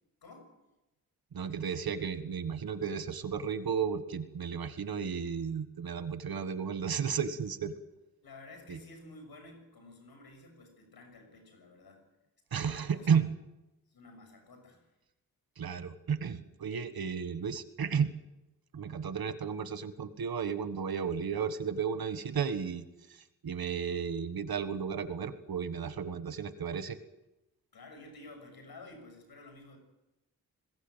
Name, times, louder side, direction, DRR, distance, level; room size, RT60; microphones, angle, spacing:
voice 1, 0.2-0.5 8.2-12.0 12.5-13.1 13.9-14.9 27.7-29.8, left 2 dB, 85° left, 4 dB, 6.7 m, -52 dB
voice 2, 1.3-7.7 8.7-8.8 12.5-13.3 15.6-18.1 18.7-27.0, right 7 dB, 80° right, 11 dB, 1.5 m, -33 dB
20.5 x 16.5 x 9.1 m, 0.97 s
cardioid pair, 70°, 36 cm